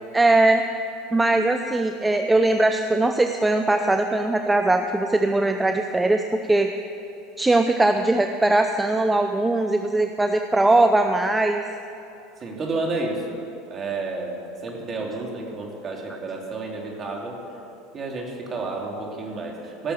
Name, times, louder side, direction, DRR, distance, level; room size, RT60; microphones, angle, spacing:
voice 1, 0.1-0.6 1.1-6.2 6.5-6.7 7.4-11.6, right 2 dB, 10° right, 6 dB, 0.6 m, -20 dB
voice 2, 12.4-13.4 13.7-17.4 17.9-19.9, right 3 dB, 35° right, 0 dB, 2.9 m, -31 dB
17.0 x 6.8 x 8.0 m, 2.8 s
hypercardioid pair, 85°, 0 cm